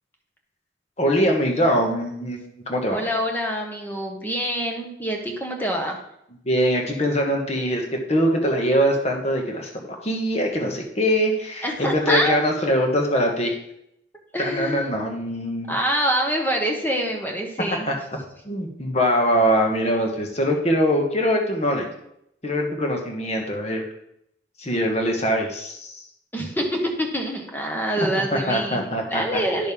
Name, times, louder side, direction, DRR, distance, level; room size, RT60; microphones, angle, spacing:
voice 1, 1.0-3.0 6.4-9.7 10.0-13.6 14.4-15.7 17.7-17.9 18.4-21.9 22.4-23.8 24.6-26.0 28.0-29.4, equal, 35° left, 2 dB, 1.3 m, -23 dB
voice 2, 2.9-6.0 11.6-12.4 14.3-14.9 15.7-17.9 26.3-28.8 29.1-29.7, equal, 10° left, 1 dB, 1.1 m, -25 dB
10.5 x 6.4 x 3.6 m, 0.77 s
head